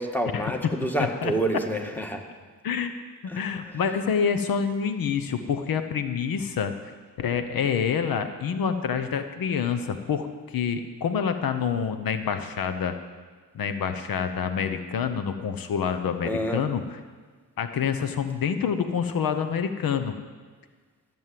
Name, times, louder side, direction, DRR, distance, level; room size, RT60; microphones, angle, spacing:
voice 1, 0.0-2.2 3.3-3.4 16.2-16.6, right 1 dB, 5° left, 3 dB, 1.7 m, -28 dB
voice 2, 1.0-1.3 2.6-2.9 3.3-6.7 7.2-12.9 13.5-17.0 17.6-20.1, left 7 dB, 80° left, 9 dB, 0.9 m, -27 dB
14.0 x 7.4 x 7.6 m, 1.5 s
cardioid pair, 70°, 34 cm